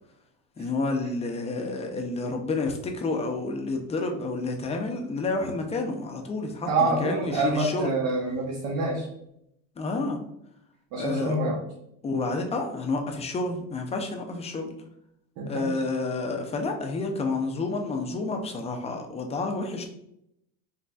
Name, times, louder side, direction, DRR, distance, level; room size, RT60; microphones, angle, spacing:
voice 1, 0.6-7.9 9.8-10.2 11.0-11.4 12.0-14.7 15.5-19.9, left 3 dB, 15° left, 3 dB, 0.5 m, -29 dB
voice 2, 6.7-9.0 10.9-11.6 15.4-15.7, right 2 dB, 65° right, -3 dB, 1.0 m, -26 dB
3.9 x 3.2 x 2.3 m, 0.77 s
supercardioid pair, 120°, 38 cm